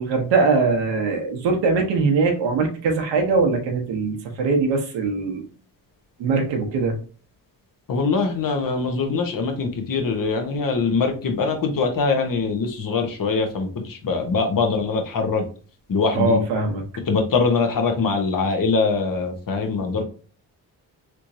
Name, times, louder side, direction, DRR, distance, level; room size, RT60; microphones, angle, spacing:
voice 1, 0.0-5.4 6.2-6.9 16.1-16.8, right 4 dB, 85° right, 3 dB, 0.9 m, -21 dB
voice 2, 7.9-15.4 15.9-16.4 17.1-20.0, left 4 dB, 50° left, 5 dB, 1.0 m, -23 dB
3.3 x 3.0 x 2.6 m, 0.38 s
supercardioid pair, 60°, 42 cm